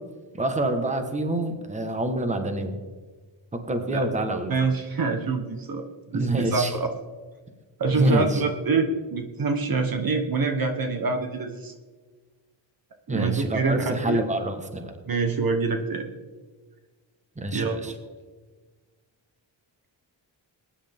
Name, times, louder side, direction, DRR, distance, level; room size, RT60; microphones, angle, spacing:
voice 1, 0.3-2.8 3.5-4.5 6.1-6.7 7.9-8.4 13.1-14.9 17.4-17.9, right 1 dB, 15° right, 6 dB, 1.3 m, -26 dB
voice 2, 4.5-6.9 7.8-11.7 13.1-14.2 15.1-16.1 17.5-17.9, right 4 dB, 50° right, 6 dB, 1.2 m, -26 dB
21.5 x 10.0 x 3.6 m, 1.4 s
wide cardioid pair, 165°, 46 cm